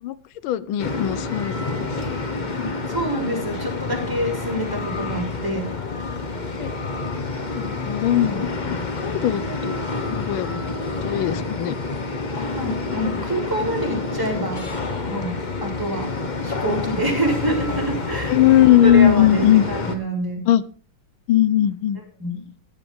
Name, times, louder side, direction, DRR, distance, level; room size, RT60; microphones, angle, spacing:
voice 1, 0.4-2.2 6.6-6.7 7.6-8.5 9.0-11.8 18.3-19.6 20.5-20.6 21.3-22.0, left 12 dB, 85° left, 17 dB, 1.5 m, -19 dB
sound 1, 0.8-19.9, left 3 dB, 25° left, 1.1 m, -28 dB
voice 2, 2.6-5.7 12.5-14.6 15.1-16.1 16.4-18.4 18.8-20.4 22.2-22.4, right 1 dB, 10° right, 2 dB, 3.9 m, -26 dB
16.0 x 10.0 x 3.6 m, 0.40 s
omnidirectional pair, 2.2 m